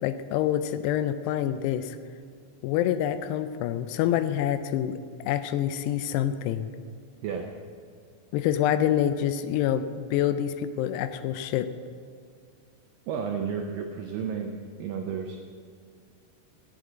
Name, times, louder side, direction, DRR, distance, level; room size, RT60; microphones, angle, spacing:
voice 1, 0.0-2.0 2.6-5.0 5.3-6.7 8.3-11.7, left 11 dB, 85° left, 11 dB, 2.6 m, -26 dB
voice 2, 13.1-15.4, right 6 dB, 85° right, 3 dB, 2.0 m, -32 dB
16.0 x 9.0 x 4.0 m, 2.2 s
omnidirectional pair, 4.8 m